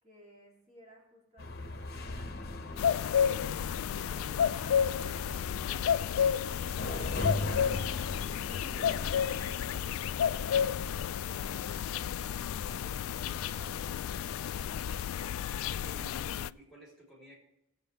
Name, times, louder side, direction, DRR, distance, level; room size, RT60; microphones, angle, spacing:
voice 1, 0.0-2.4, left 1 dB, 30° right, -4 dB, 3.1 m, -60 dB
sound 1, 1.4-15.0, left 2 dB, 45° left, 0.9 m, -41 dB
sound 2, 2.8-16.5, left 8 dB, 75° left, 0.3 m, -31 dB
Zipper (clothing), 13.3-13.9 14.4-15.2 15.7-16.5, equal, 70° right, 4.4 m, -58 dB
voice 2, 15.7-17.4, left 1 dB, ahead, -4 dB, 3.4 m, -53 dB
18.5 x 7.9 x 3.4 m, 0.88 s
head